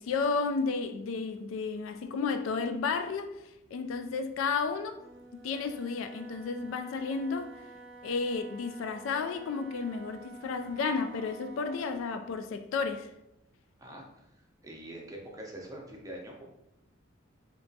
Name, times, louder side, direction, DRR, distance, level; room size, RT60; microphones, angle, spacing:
voice 1, 0.0-3.3 3.7-5.0 5.3-7.5 8.0-13.1, left 4 dB, 75° left, 0.3 m, -32 dB
Wind instrument woodwind instrument, 4.9-12.1, right 3 dB, 65° right, 0.5 m, -50 dB
voice 2, 13.8-16.4, right 1 dB, 15° right, 0.5 m, -45 dB
3.3 x 2.9 x 2.7 m
head